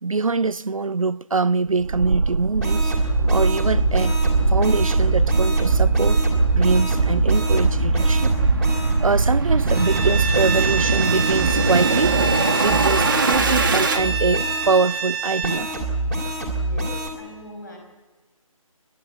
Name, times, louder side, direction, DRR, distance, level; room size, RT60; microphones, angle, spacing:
voice 1, 0.0-4.2 4.5-6.2 6.5-8.3 9.0-12.2 12.6-15.7, right 4 dB, 70° right, 0.5 m, -23 dB
sound 1, 1.8-14.0, right 4 dB, 35° right, 1.0 m, -21 dB
sound 2, 2.6-9.0 9.6-14.7 15.4-17.1, right 1 dB, 5° left, 2.1 m, -26 dB
Bowed string instrument, 9.8-15.7, right 6 dB, 20° right, 1.3 m, -27 dB
voice 2, 16.4-17.8, left 1 dB, 35° left, 5.2 m, -41 dB
28.5 x 11.5 x 8.3 m
figure-of-eight pair, 155°, 18 cm